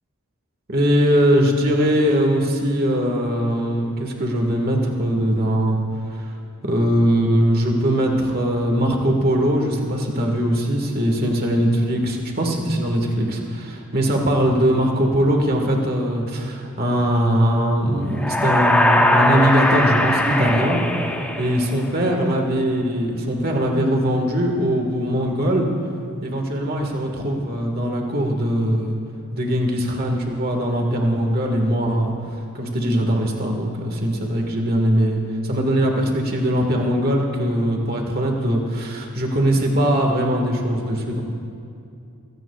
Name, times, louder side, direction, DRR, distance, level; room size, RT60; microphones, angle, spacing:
voice 1, 0.7-5.8 6.1-6.3 6.6-20.8 21.4-25.7 26.2-29.0 29.3-32.1 32.5-41.2, equal, 45° right, 1 dB, 1.7 m, -21 dB
sound 1, 18.1-22.0, left 1 dB, 5° left, 0.7 m, -20 dB
22.5 x 16.5 x 2.4 m, 2.5 s
head